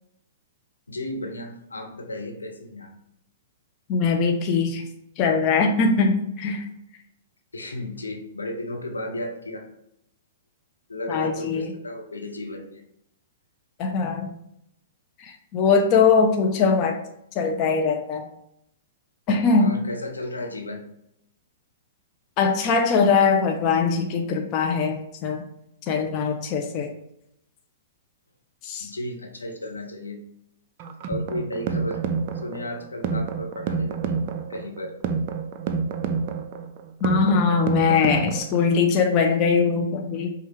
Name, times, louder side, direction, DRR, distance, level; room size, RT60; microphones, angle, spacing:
voice 1, 0.9-2.9 7.5-9.7 10.9-12.8 19.6-20.8 28.8-30.2 31.1-32.0 32.3-34.9, left 1 dB, 85° left, 2 dB, 0.8 m, -34 dB
voice 2, 3.9-4.8 5.2-6.6 11.1-11.7 13.8-14.3 15.2-17.0 17.4-18.2 19.3-19.7 22.4-25.4 25.9-26.9 28.6-28.9 37.0-40.3, left 5 dB, 35° left, 3 dB, 0.6 m, -21 dB
sound 1, 30.8-38.8, right 5 dB, 45° right, 0.4 m, -28 dB
5.3 x 2.3 x 3.2 m, 0.77 s
figure-of-eight pair, 115°, 0 cm